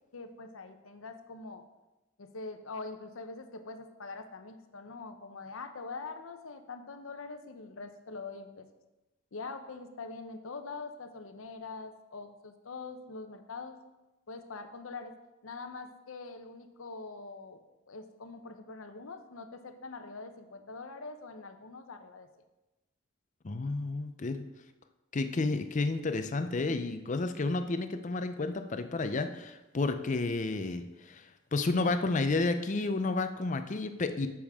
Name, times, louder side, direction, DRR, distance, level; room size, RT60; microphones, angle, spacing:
voice 1, 0.1-1.6 2.2-8.7 9.3-13.8 14.3-15.1 15.4-17.6 17.9-22.3, left 3 dB, 75° left, 8 dB, 0.8 m, -44 dB
voice 2, 23.4-24.4 25.1-34.3, left 3 dB, 35° left, 9 dB, 0.5 m, -31 dB
9.7 x 7.2 x 3.6 m, 1.0 s
head